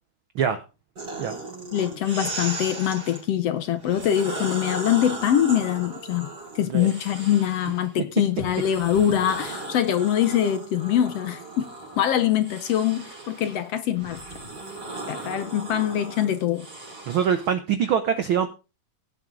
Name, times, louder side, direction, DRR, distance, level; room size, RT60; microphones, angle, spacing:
sound 1, 1.0-3.2 3.8-7.9 8.4-17.5, right 2 dB, 30° right, 5.0 m, -37 dB
voice 1, 1.7-6.3 6.5-11.7 12.0-14.2 15.1-16.7, left 10 dB, 65° left, 1.7 m, -23 dB
voice 2, 17.1-18.5, right 8 dB, 75° right, 1.1 m, -23 dB
17.0 x 8.0 x 3.8 m
omnidirectional pair, 3.5 m